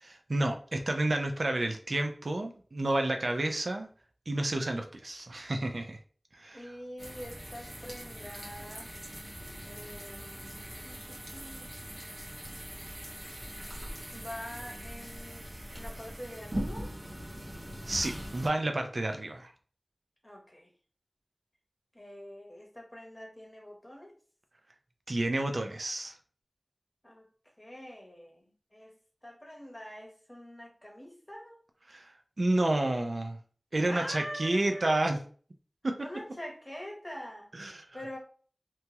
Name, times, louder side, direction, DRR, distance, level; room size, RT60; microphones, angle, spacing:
voice 1, 0.0-3.9 4.3-6.0 6.3-6.6 17.9-19.5 25.1-26.1 31.9-33.4 33.7-35.2 35.8-36.1 37.6-37.9, right 2 dB, 75° right, 0.4 m, -30 dB
voice 2, 6.5-8.9 9.6-10.5 10.8-11.7 14.1-16.9 20.2-20.7 21.9-24.1 27.0-27.3 27.6-29.0 29.2-31.6 33.8-35.1 36.0-37.5 37.9-38.2, equal, 20° left, 0.9 m, -44 dB
sound 1, 7.0-18.5, equal, 55° right, 0.9 m, -41 dB
2.9 x 2.3 x 2.8 m
wide cardioid pair, 50°, 0 cm